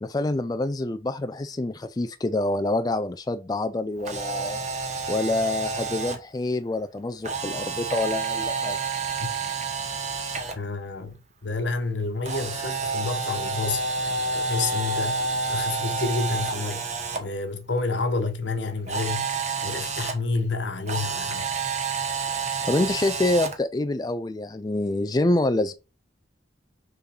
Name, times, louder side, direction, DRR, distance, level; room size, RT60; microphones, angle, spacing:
voice 1, 0.0-4.6 5.1-8.8 22.6-25.7, left 2 dB, 20° left, 0.4 m, -26 dB
Camera, 4.0-6.2 7.2-10.5 12.2-17.2 18.9-20.1 20.9-23.6, right 4 dB, 40° right, 1.3 m, -29 dB
voice 2, 10.6-15.2 15.5-16.9 17.2-21.5, left 3 dB, 75° left, 1.3 m, -29 dB
6.8 x 3.8 x 6.0 m
head